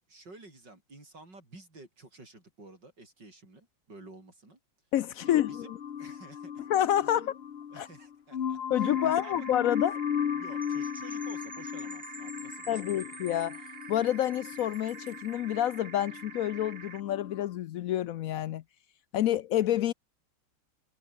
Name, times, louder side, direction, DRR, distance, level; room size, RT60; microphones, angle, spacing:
voice 1, 0.1-4.6 5.2-5.7 6.0-6.7 7.2-7.3 7.7-9.5 10.3-13.0, right 2 dB, 60° right, 7.4 m, -51 dB
voice 2, 4.9-5.8 6.7-7.3 7.7-7.9 8.7-10.0 12.7-13.6 13.9-18.6 19.1-19.9, left 12 dB, 80° left, 0.7 m, -28 dB
sound 1, 5.2-17.4, left 8 dB, 50° left, 0.8 m, -37 dB
sound 2, 8.8-17.0, right 6 dB, 40° right, 1.4 m, -47 dB
Percussion / Wind chime, 10.6-15.3, equal, ahead, 4.2 m, -50 dB
omnidirectional pair, 2.1 m